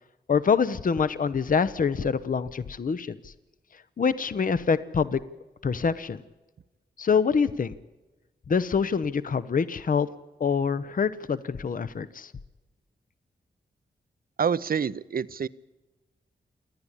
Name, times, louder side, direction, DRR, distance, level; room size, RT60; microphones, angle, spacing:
voice 1, 0.3-3.3 4.0-5.2 5.6-6.2 7.0-7.7 8.5-10.1 10.4-12.3, left 6 dB, 50° left, 15 dB, 0.7 m, -25 dB
voice 2, 14.4-15.5, right 7 dB, 55° right, 18 dB, 0.6 m, -27 dB
28.0 x 9.8 x 9.9 m, 1.1 s
cardioid pair, 60°, 18 cm